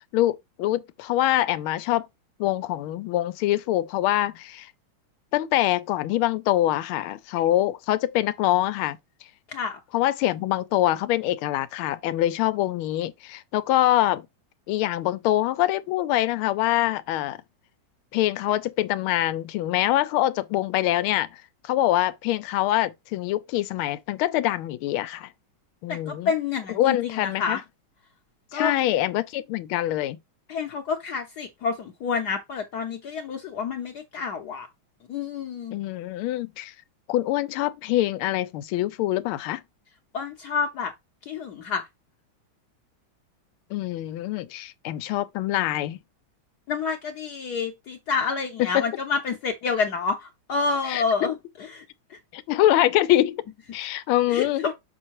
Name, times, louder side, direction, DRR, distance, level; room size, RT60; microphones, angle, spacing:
voice 1, 0.1-2.1 2.4-4.7 5.3-9.0 9.9-14.3 14.7-17.4 18.1-21.3 21.6-25.3 25.8-26.3 26.7-27.6 28.5-30.2 35.7-36.7 37.1-39.6 43.7-46.0 48.7-48.9 50.8-51.4 52.3-53.4 53.7-54.7, left 14 dB, 90° left, 1.4 m, -24 dB
voice 2, 9.5-9.8 25.9-27.6 28.5-28.7 30.5-34.7 35.1-35.7 40.1-40.9 41.3-41.8 46.7-51.3 51.7-51.8 54.3-54.7, left 5 dB, 65° left, 1.1 m, -28 dB
6.4 x 5.4 x 2.9 m
omnidirectional pair, 2.3 m